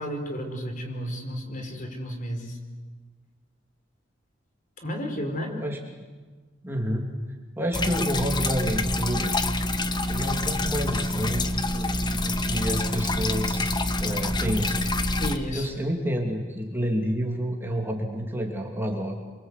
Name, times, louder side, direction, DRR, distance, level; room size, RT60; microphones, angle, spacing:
voice 1, 0.0-2.6 4.8-5.5 15.2-15.7, equal, 45° left, 4 dB, 4.7 m, -32 dB
voice 2, 5.5-6.0 6.6-7.1 7.6-9.3 10.1-11.9 12.2-14.8 15.5-19.1, equal, 10° right, 0 dB, 2.8 m, -29 dB
sound 1, 7.7-15.4, left 2 dB, 25° left, 1.3 m, -26 dB
28.5 x 24.5 x 8.3 m, 1.4 s
head